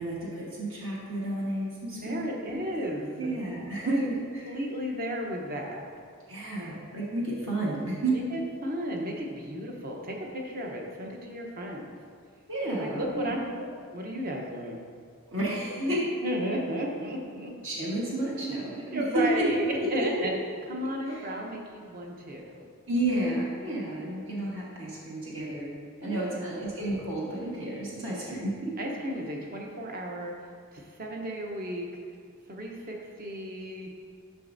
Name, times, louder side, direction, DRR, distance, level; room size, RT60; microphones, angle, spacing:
voice 1, 0.0-2.6 3.2-4.1 4.3-4.5 6.3-8.1 12.5-13.3 15.3-16.0 17.6-19.5 20.0-20.1 21.1-21.3 22.9-28.7, right 1 dB, 60° right, -6 dB, 1.3 m, -31 dB
voice 2, 2.0-3.3 3.8-4.1 4.5-5.8 8.1-12.0 12.7-14.8 15.8-17.5 18.9-20.3 20.7-22.7 26.0-26.7 28.8-30.3 30.7-31.9 32.5-33.9, equal, 40° right, 0 dB, 0.8 m, -34 dB
10.5 x 6.0 x 2.6 m, 2.1 s
head